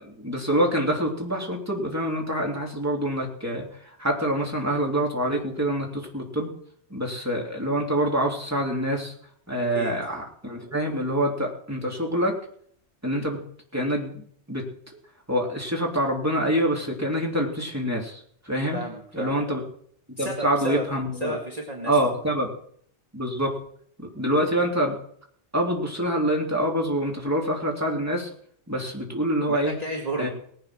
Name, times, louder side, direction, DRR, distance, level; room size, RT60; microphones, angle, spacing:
voice 1, 0.0-6.5 6.9-9.1 9.5-12.4 13.0-13.4 13.7-14.6 15.3-18.8 19.1-19.6 20.2-21.4 21.9-22.5 23.1-23.6 24.0-25.0 25.5-28.3 28.7-29.8 30.2-30.3, equal, 15° right, -1 dB, 3.1 m, -26 dB
voice 2, 18.7-19.6 20.2-20.9 21.2-22.1 29.5-30.3, right 1 dB, 35° right, 0 dB, 1.9 m, -32 dB
19.5 x 8.6 x 6.3 m, 0.63 s
omnidirectional pair, 1.2 m